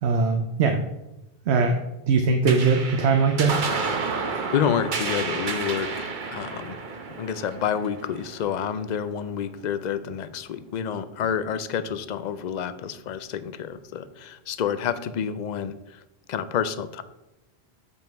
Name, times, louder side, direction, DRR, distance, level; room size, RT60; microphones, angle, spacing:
voice 1, 0.0-0.8 1.5-1.8 2.1-3.6, right 4 dB, 85° right, 4 dB, 1.0 m, -21 dB
sound 1, 2.5-9.2, right 4 dB, 50° right, 0.9 m, -31 dB
voice 2, 4.5-6.8 7.2-16.0 16.3-17.0, left 8 dB, 55° left, 13 dB, 0.5 m, -29 dB
7.2 x 5.3 x 4.5 m, 0.93 s
omnidirectional pair, 1.1 m